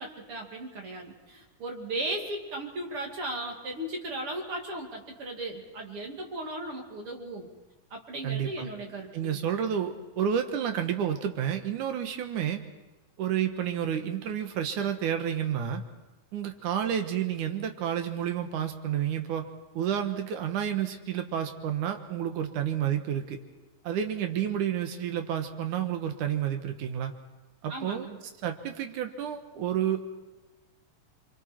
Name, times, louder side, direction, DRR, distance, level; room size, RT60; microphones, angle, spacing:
voice 1, 0.0-7.5 7.9-9.4 27.7-28.2, right 1 dB, 40° right, 1 dB, 3.1 m, -36 dB
voice 2, 8.2-8.7 9.1-12.6 13.2-15.8 16.3-19.5 19.7-23.4 23.8-27.1 27.6-28.1 28.4-30.2, right 9 dB, 65° right, 6 dB, 2.6 m, -30 dB
28.5 x 24.0 x 4.5 m, 1.1 s
omnidirectional pair, 4.0 m